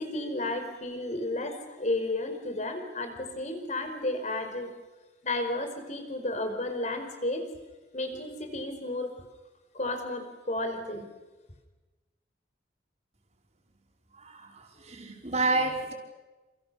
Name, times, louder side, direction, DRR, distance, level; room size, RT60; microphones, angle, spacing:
voice 1, 0.0-4.7 5.2-7.4 7.9-9.1 9.7-11.1, left 2 dB, 40° left, 6 dB, 5.0 m, -32 dB
voice 2, 14.1-15.9, right 3 dB, 40° right, 1 dB, 5.4 m, -30 dB
29.5 x 29.0 x 7.0 m, 1.2 s
head